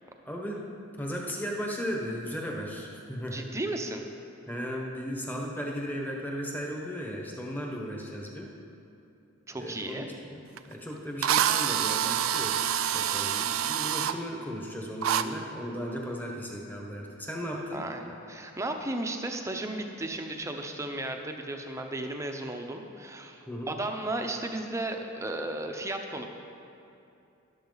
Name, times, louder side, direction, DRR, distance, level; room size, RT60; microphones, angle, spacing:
voice 1, 0.2-3.5 4.5-8.5 9.6-17.8 23.5-23.7, equal, 10° left, -1 dB, 1.1 m, -36 dB
voice 2, 3.3-4.0 9.5-10.1 17.7-26.2, right 2 dB, 15° right, 4 dB, 0.7 m, -34 dB
Drill, 10.6-10.7 11.2-14.1 15.0-15.2, right 10 dB, 80° right, 0.4 m, -26 dB
13.0 x 11.5 x 4.0 m, 2.7 s
head